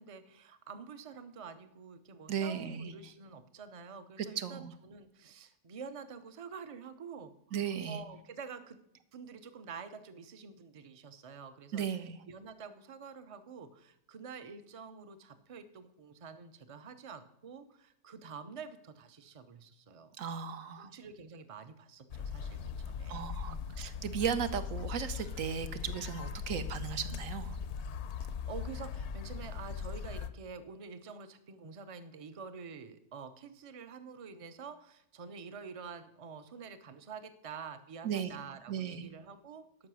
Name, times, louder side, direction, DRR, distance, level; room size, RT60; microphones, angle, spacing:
voice 1, 0.0-8.8 9.1-11.9 12.3-20.1 20.8-23.7 28.5-39.6, right 5 dB, 35° right, 11 dB, 0.5 m, -48 dB
voice 2, 2.3-2.9 4.2-4.7 7.5-8.0 11.7-12.2 20.2-20.9 23.1-27.6 38.0-38.4 38.7-39.1, right 8 dB, 70° right, 10 dB, 1.1 m, -36 dB
sound 1, 22.1-30.3, left 7 dB, 60° left, 0.8 m, -40 dB
12.5 x 5.7 x 6.2 m, 0.75 s
omnidirectional pair, 1.5 m